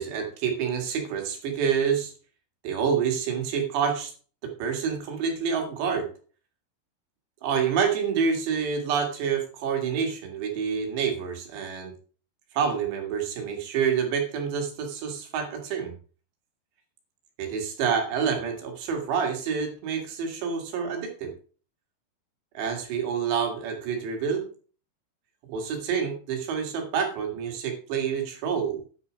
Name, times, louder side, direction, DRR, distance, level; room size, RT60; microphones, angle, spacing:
voice 1, 0.0-2.1 2.6-4.1 4.4-6.1 7.4-11.9 12.5-16.0 17.4-21.3 22.6-24.5 25.5-28.8, right 6 dB, 65° right, 3 dB, 3.9 m, -28 dB
9.9 x 6.8 x 5.1 m, 0.39 s
omnidirectional pair, 5.8 m